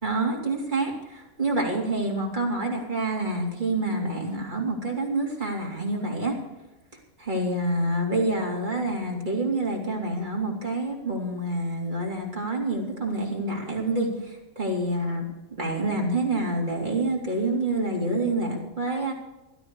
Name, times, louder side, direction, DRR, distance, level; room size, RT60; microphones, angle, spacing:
voice 1, 0.0-6.4 7.2-19.1, right 2 dB, 35° right, -2 dB, 3.6 m, -27 dB
16.0 x 12.5 x 4.8 m, 1.0 s
omnidirectional pair, 1.3 m